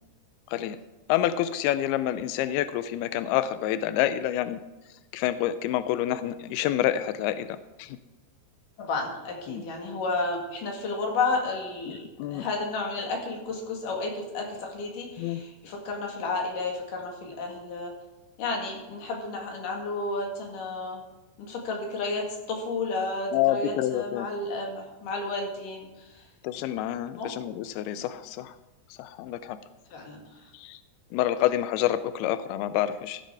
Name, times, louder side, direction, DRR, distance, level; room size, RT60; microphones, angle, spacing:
voice 1, 1.1-4.6 5.1-8.0 9.5-9.6 12.2-12.4 15.2-15.4 23.3-24.3 26.4-28.5 29.0-29.6 30.5-30.8 31.1-33.2, left 12 dB, 90° left, 13 dB, 2.2 m, -28 dB
voice 2, 8.8-17.9 18.4-21.0 21.4-26.2 27.1-27.3 29.9-30.5, left 3 dB, 55° left, 1 dB, 3.1 m, -32 dB
15.5 x 7.4 x 4.6 m, 1.1 s
omnidirectional pair, 5.1 m